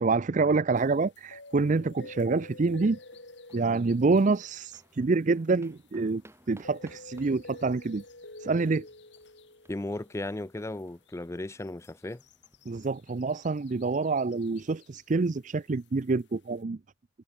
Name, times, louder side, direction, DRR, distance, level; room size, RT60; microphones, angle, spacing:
voice 1, 0.0-3.0 3.5-6.2 6.5-8.0 8.4-8.9 12.7-16.8, right 3 dB, 40° right, 0.5 m, -27 dB
sound 1, 0.8-6.1 6.5-10.8 11.1-11.2 11.6-15.3 15.8-16.2, left 2 dB, 65° left, 4.3 m, -50 dB
sound 2, 2.9-14.7, right 1 dB, 15° right, 7.8 m, -62 dB
voice 2, 9.7-12.2, left 2 dB, 15° left, 0.4 m, -35 dB
head